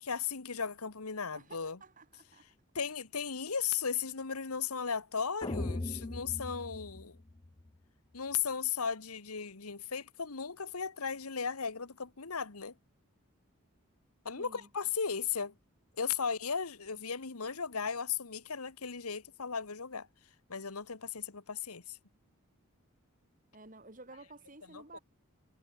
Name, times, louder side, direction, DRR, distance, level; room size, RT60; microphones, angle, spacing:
voice 1, 0.0-1.8 2.7-7.2 8.1-12.7 14.2-15.5 16.0-20.1 20.5-22.0 24.7-25.0, left 6 dB, 90° left, 1.4 m, -36 dB
voice 2, 1.3-2.5 14.4-14.7 23.5-25.0, right 2 dB, 35° right, 3.5 m, -52 dB
sound 1, 5.4-7.7, left 2 dB, 20° left, 0.4 m, -39 dB
head